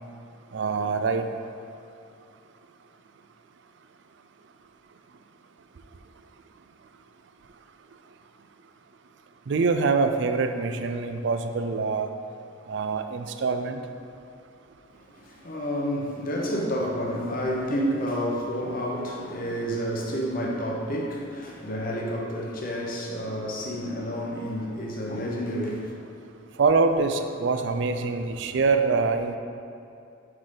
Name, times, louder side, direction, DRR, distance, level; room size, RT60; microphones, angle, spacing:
voice 1, 0.5-1.3 9.5-12.1 12.7-13.8 26.6-29.4, right 4 dB, 55° right, 7 dB, 0.4 m, -24 dB
voice 2, 15.1-26.1, equal, 40° left, -2 dB, 0.9 m, -30 dB
6.4 x 5.0 x 3.8 m, 2.6 s
head